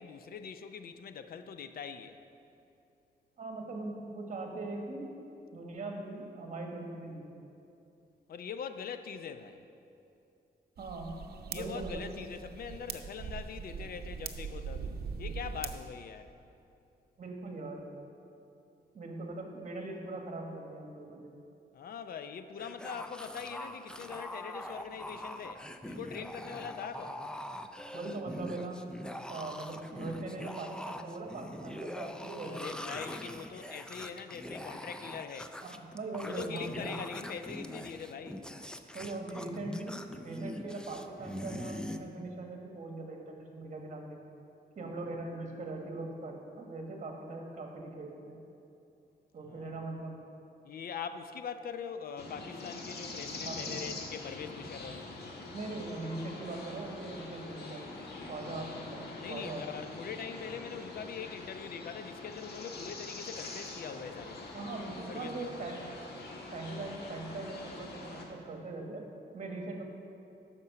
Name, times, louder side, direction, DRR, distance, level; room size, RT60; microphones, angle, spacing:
voice 1, 0.0-2.2 8.3-9.7 11.5-16.3 21.7-27.2 32.4-35.6 36.2-38.4 49.4-49.8 50.6-55.1 58.5-58.8 59.2-64.6 65.1-65.7, left 7 dB, 65° left, 0.5 m, -43 dB
voice 2, 3.4-5.1 5.5-7.4 10.8-11.1 11.5-12.1 17.2-17.8 18.9-21.3 27.9-28.8 29.3-32.8 35.6-37.0 38.9-40.0 40.2-44.2 44.7-48.4 49.3-50.2 53.4-53.7 55.5-57.8 58.3-59.6 64.5-65.8 66.5-69.0 69.3-69.8, right 2 dB, 50° right, 1.5 m, -41 dB
sound 1, 10.8-15.8, right 6 dB, 75° right, 0.7 m, -41 dB
sound 2, 22.6-42.0, left 1 dB, 5° left, 0.4 m, -43 dB
sound 3, 52.2-68.2, left 3 dB, 85° left, 1.4 m, -44 dB
9.7 x 6.1 x 6.7 m
wide cardioid pair, 140°, 16 cm